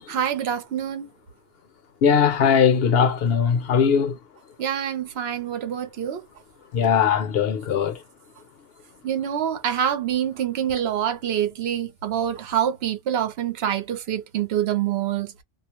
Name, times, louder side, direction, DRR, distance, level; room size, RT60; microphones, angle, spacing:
voice 1, 0.1-1.1 4.6-6.2 9.0-15.4, right 10 dB, 60° right, 0.9 m, -26 dB
voice 2, 2.0-4.2 6.7-8.0, left 7 dB, 60° left, 0.9 m, -19 dB
2.4 x 2.1 x 2.9 m
omnidirectional pair, 1.2 m